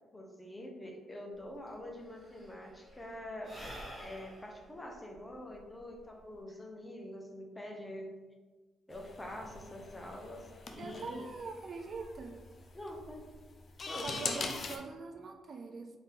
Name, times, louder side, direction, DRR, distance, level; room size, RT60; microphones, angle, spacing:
voice 1, 0.1-3.6 4.0-8.1 8.9-11.2 12.7-13.2 13.9-14.4, left 1 dB, 15° left, 1 dB, 0.8 m, -45 dB
Sigh / Breathing, 1.4-1.5 1.7-6.4, equal, 15° right, 1.2 m, -50 dB
sound 1, 8.9-14.8, left 3 dB, 45° left, 0.5 m, -42 dB
voice 2, 10.8-12.4 14.0-15.9, right 4 dB, 50° right, 4 dB, 0.3 m, -43 dB
3.5 x 2.7 x 3.7 m, 1.3 s
cardioid pair, 90°, 0 cm